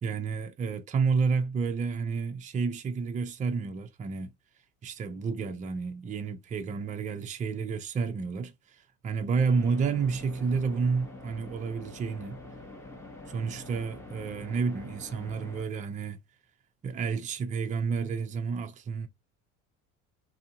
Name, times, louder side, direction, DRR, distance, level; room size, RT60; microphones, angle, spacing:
voice 1, 0.0-4.3 4.8-12.4 13.3-16.2 16.8-19.1, right 5 dB, 20° right, 0.5 m, -30 dB
sound 1, 9.3-15.6, left 2 dB, 5° left, 0.8 m, -46 dB
2.6 x 2.0 x 2.5 m
hypercardioid pair, 65°, 42 cm